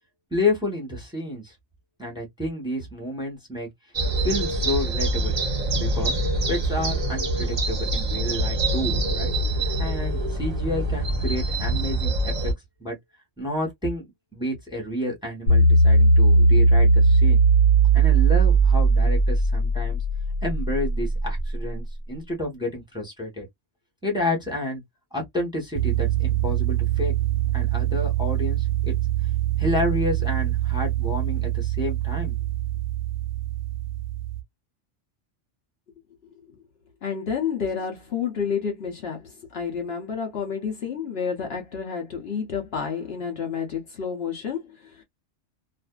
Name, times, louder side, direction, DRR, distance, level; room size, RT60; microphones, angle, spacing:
voice 1, 0.3-1.5 2.0-3.7 4.2-5.4 5.7-6.2 6.5-9.3 9.6-12.5 12.8-13.0 13.4-14.0 14.3-17.4 17.9-20.0 20.4-23.5 24.0-24.8 25.1-27.1 27.5-28.9 29.6-32.4, left 2 dB, 5° right, 1.0 m, -30 dB
sound 1, 3.9-12.5, right 2 dB, 35° right, 0.8 m, -25 dB
sound 2, 15.5-21.7, right 3 dB, 80° left, 1.4 m, -18 dB
sound 3, 25.7-34.4, right 15 dB, 65° right, 0.4 m, -25 dB
voice 2, 37.0-44.6, left 6 dB, 60° left, 1.0 m, -29 dB
2.6 x 2.5 x 2.2 m
omnidirectional pair, 1.3 m